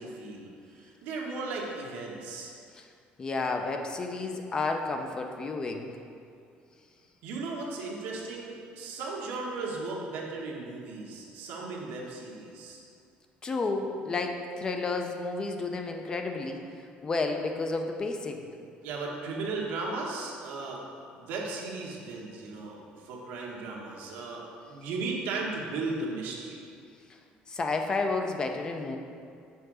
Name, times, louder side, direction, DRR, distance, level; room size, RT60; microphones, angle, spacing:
voice 1, 0.0-2.5 7.2-12.8 18.8-20.8 21.1-26.6, right 3 dB, 85° right, -2 dB, 1.4 m, -36 dB
voice 2, 3.2-5.9 13.4-16.6 17.0-18.5 27.5-29.0, left 3 dB, 25° left, 4 dB, 0.5 m, -31 dB
6.9 x 3.7 x 6.2 m, 2.4 s
cardioid pair, 160°, 3 cm